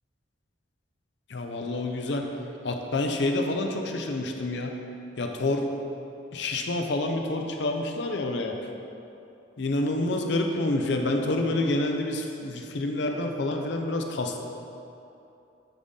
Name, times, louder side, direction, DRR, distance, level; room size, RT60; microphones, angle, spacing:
voice 1, 1.3-4.8 5.2-5.7 6.3-8.6 9.6-14.4, left 2 dB, 70° left, 3 dB, 0.6 m, -28 dB
10.0 x 3.9 x 3.7 m, 2.8 s
head